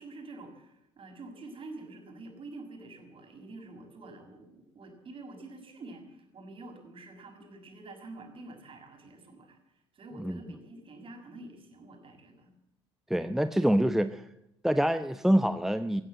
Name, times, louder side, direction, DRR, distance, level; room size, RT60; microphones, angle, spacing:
voice 1, 0.0-9.6 9.9-12.5, right 2 dB, 40° right, 4 dB, 6.4 m, -47 dB
voice 2, 13.1-14.3 14.6-16.0, equal, ahead, 11 dB, 0.9 m, -26 dB
22.5 x 15.5 x 7.8 m, 0.82 s
figure-of-eight pair, 60°, 14 cm